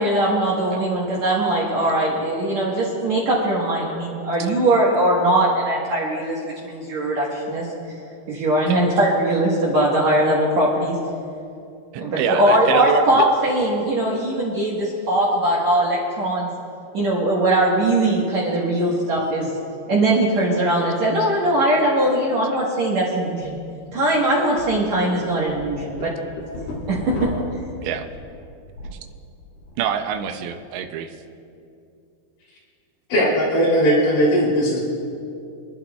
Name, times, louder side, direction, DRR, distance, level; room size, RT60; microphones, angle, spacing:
voice 1, 0.0-7.7 8.3-11.0 12.0-16.5 16.9-19.5 19.9-23.6 23.9-26.1 26.9-27.3, right 1 dB, 60° right, -5 dB, 1.9 m, -20 dB
voice 2, 11.9-13.3 27.8-28.1 29.8-31.1, right 8 dB, 80° right, 7 dB, 2.8 m, -25 dB
sound 1, 23.3-23.5 23.9-24.0 24.6-24.8 25.2-29.0 29.4-29.8, left 1 dB, 60° left, 3.4 m, -33 dB
voice 3, 33.1-34.8, equal, 80° left, -5 dB, 5.4 m, -18 dB
27.5 x 11.5 x 2.3 m, 2.6 s
omnidirectional pair, 5.0 m